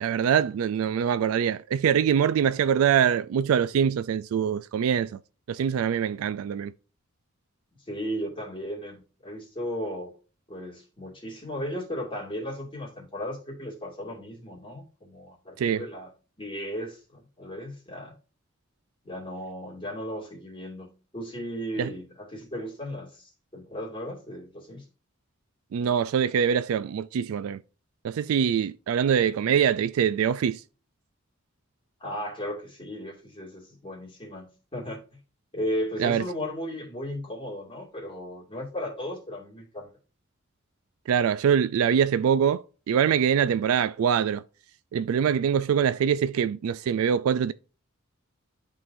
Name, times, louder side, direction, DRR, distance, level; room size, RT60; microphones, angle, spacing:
voice 1, 0.0-5.2 5.5-6.7 15.6-15.9 21.8-21.9 25.7-27.6 28.0-30.6 36.0-36.2 41.1-44.4 44.9-47.5, right 8 dB, 90° right, 0.3 m, -24 dB
voice 2, 7.9-10.1 10.5-16.1 16.4-18.2 19.0-20.9 21.1-24.8 32.0-35.0 35.5-39.9, equal, 25° left, 2.2 m, -35 dB
11.0 x 3.8 x 2.6 m
head